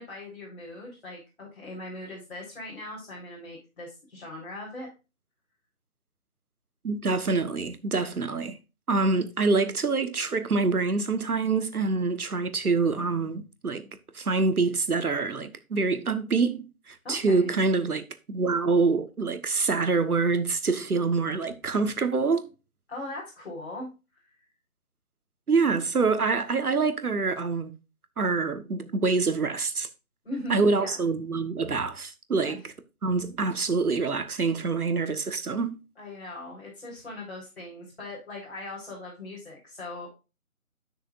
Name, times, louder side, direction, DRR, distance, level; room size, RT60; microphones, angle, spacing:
voice 1, 0.0-4.9 17.0-17.6 22.9-23.9 30.2-31.1 32.4-32.7 36.0-40.1, left 1 dB, 45° left, 4.0 m, -39 dB
voice 2, 6.8-8.6 8.9-13.9 14.1-22.5 25.5-27.7 28.2-29.9 30.5-32.7 33.0-35.8, right 4 dB, 85° right, 1.3 m, -26 dB
10.5 x 6.3 x 2.5 m
figure-of-eight pair, 165°, 44 cm